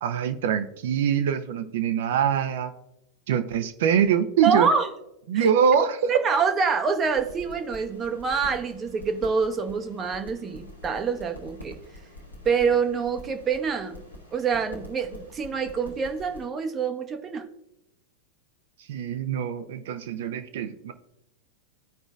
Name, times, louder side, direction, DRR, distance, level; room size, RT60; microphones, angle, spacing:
voice 1, 0.0-2.7 3.3-4.7 5.3-6.1 18.9-20.9, right 8 dB, 55° right, 9 dB, 0.6 m, -24 dB
voice 2, 4.4-4.9 5.3-5.5 6.1-11.7 12.4-14.0 14.3-17.5, right 5 dB, 25° right, 6 dB, 0.8 m, -26 dB
sound 1, 7.0-16.5, left 1 dB, 85° left, 1.3 m, -46 dB
14.5 x 5.0 x 2.4 m, 0.85 s
figure-of-eight pair, 90°, 0 cm